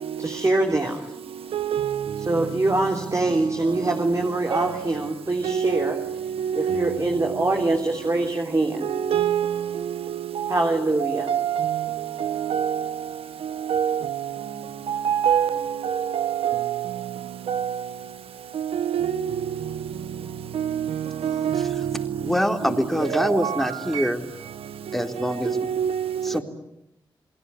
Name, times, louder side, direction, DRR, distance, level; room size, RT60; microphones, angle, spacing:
voice 1, 0.2-1.1 2.3-6.0 6.6-8.9 10.5-11.3, right 2 dB, 35° right, 3.5 m, -24 dB
voice 2, 1.5-2.3 4.5-4.8 5.4-7.3 8.8-10.6 11.0-12.9 13.7-14.3 14.9-16.9 17.5-17.8 18.5-19.3 20.5-22.1 23.0-23.7 23.9-24.0 25.2-26.4, right 9 dB, 90° right, 1.2 m, -26 dB
voice 3, 22.2-24.3 24.9-25.6 26.2-26.4, equal, ahead, 4.0 m, -24 dB
29.0 x 20.0 x 9.8 m
cardioid pair, 45°, 9 cm